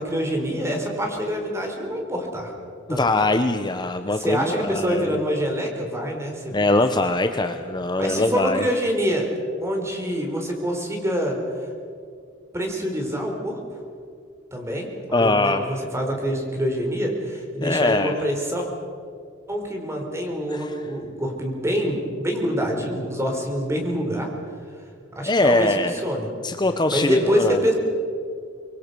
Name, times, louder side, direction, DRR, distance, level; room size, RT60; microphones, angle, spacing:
voice 1, 0.0-2.5 2.9-3.1 4.2-6.6 8.0-9.3 9.6-11.4 12.5-13.6 14.5-18.7 19.5-24.3 25.1-25.7 26.0-26.3 26.9-27.7, equal, 15° right, 1 dB, 4.1 m, -26 dB
voice 2, 2.9-5.2 6.5-8.6 15.1-15.6 17.6-18.2 20.5-20.7 25.3-25.9 26.4-27.6, left 2 dB, 25° left, 7 dB, 0.9 m, -22 dB
25.0 x 23.0 x 6.9 m, 2.2 s
head